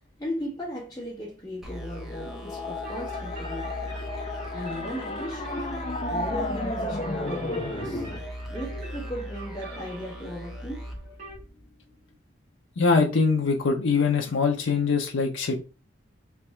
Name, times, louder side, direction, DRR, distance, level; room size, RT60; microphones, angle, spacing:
voice 1, 0.2-4.0 4.5-5.5 6.1-8.1 8.5-10.8, equal, 15° left, 1.5 m, -36 dB
sound 1, 1.6-11.9, equal, ahead, 0.7 m, -39 dB
sound 2, 1.7-8.2, left 2 dB, 30° left, 0.5 m, -33 dB
sound 3, 2.8-11.4, equal, 40° right, 1.4 m, -45 dB
voice 2, 12.8-15.6, left 4 dB, 80° left, 0.6 m, -23 dB
3.5 x 2.9 x 4.3 m
head